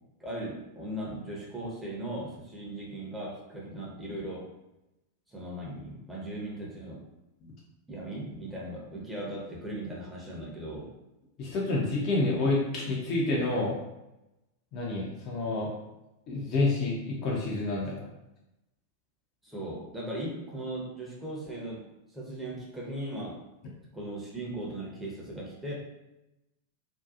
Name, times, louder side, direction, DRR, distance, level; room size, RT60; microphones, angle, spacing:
voice 1, 0.2-4.5 5.3-7.0 7.9-10.9 19.4-21.9 22.1-23.4 23.9-25.7, right 1 dB, 5° right, -5 dB, 0.8 m, -38 dB
voice 2, 11.4-13.7 14.7-15.7 16.3-18.0, left 2 dB, 35° left, -4 dB, 0.6 m, -28 dB
2.6 x 2.2 x 2.4 m, 0.93 s
figure-of-eight pair, 90°, 0 cm